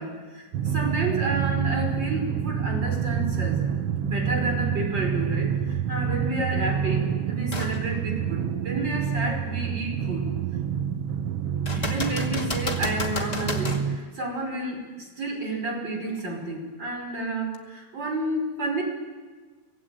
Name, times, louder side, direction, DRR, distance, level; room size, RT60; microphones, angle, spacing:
voice 1, 0.0-3.6 4.0-10.3 11.7-18.8, right 2 dB, 30° right, 2 dB, 6.0 m, -30 dB
Drum, 0.5-14.0, right 8 dB, 80° right, 1.3 m, -28 dB
sound 1, 7.5-7.8 8.4-8.5 11.6-13.9 17.5-17.6, left 2 dB, 15° left, 1.5 m, -31 dB
25.0 x 19.5 x 8.6 m, 1.4 s
omnidirectional pair, 3.9 m